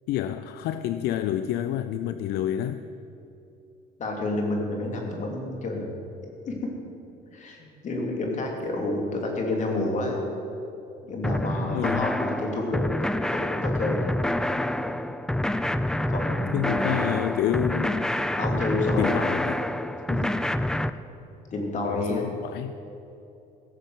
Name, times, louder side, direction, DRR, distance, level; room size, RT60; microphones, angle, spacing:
voice 1, 0.1-2.8 11.7-12.2 16.5-18.1 19.0-19.6 21.8-22.7, left 11 dB, 75° left, 11 dB, 0.5 m, -28 dB
voice 2, 4.0-5.9 6.5-6.7 7.3-10.2 11.0-14.1 16.1-17.0 18.4-19.2 20.1-20.2 21.5-22.4, left 2 dB, 45° left, 1 dB, 3.0 m, -29 dB
sound 1, 11.2-20.9, left 1 dB, 5° left, 0.4 m, -27 dB
17.0 x 6.9 x 7.8 m, 2.9 s
cardioid pair, 105°, 17 cm